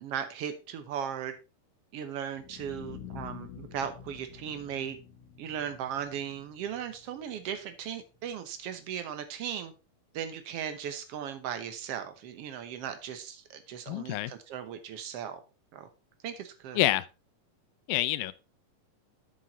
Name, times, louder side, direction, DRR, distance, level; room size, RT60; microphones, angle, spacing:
voice 1, 0.0-1.3 1.9-5.0 5.4-9.7 10.1-15.4 15.7-15.9 16.2-16.8, right 8 dB, 80° right, 1.3 m, -37 dB
sound 1, 2.2-8.2, left 9 dB, 60° left, 2.6 m, -48 dB
voice 2, 13.9-14.3 16.8-17.1 17.9-18.3, left 16 dB, 85° left, 2.4 m, -27 dB
7.8 x 7.6 x 4.1 m
omnidirectional pair, 4.1 m